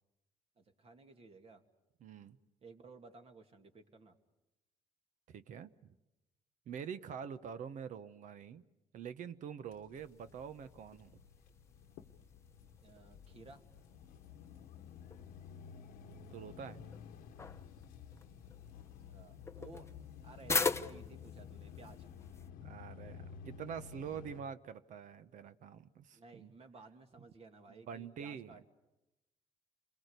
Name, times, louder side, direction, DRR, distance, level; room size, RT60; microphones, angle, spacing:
voice 1, 0.6-1.7 2.6-4.2 12.8-13.6 18.1-18.2 19.0-19.9 20.2-22.1 26.1-28.6, right 3 dB, 45° right, 5 dB, 2.6 m, -56 dB
voice 2, 2.0-2.4 5.3-6.0 6.7-8.6 8.9-11.2 16.3-16.9 22.6-26.5 27.7-28.6, right 7 dB, 65° right, 13 dB, 1.1 m, -46 dB
sound 1, 9.7-24.4, left 7 dB, 90° left, 1.1 m, -53 dB
sound 2, 10.0-22.5, left 4 dB, 20° left, 0.9 m, -43 dB
28.0 x 22.0 x 8.3 m, 0.96 s
cardioid pair, 95°, 14 cm